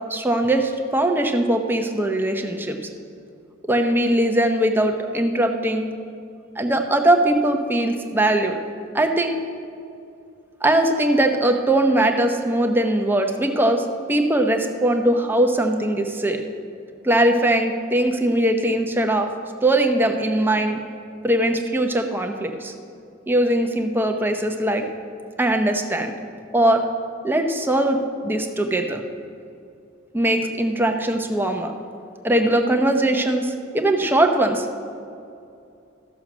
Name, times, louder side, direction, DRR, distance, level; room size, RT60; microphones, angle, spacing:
voice 1, 0.1-2.8 3.7-5.9 6.6-8.6 8.9-9.4 10.6-16.4 17.0-19.3 19.6-20.8 21.2-22.7 23.3-24.8 25.4-26.1 26.5-26.8 27.2-28.0 28.2-29.0 30.1-31.7 32.2-34.7, right 1 dB, 10° right, 4 dB, 0.8 m, -20 dB
13.5 x 6.4 x 6.1 m, 2.5 s
head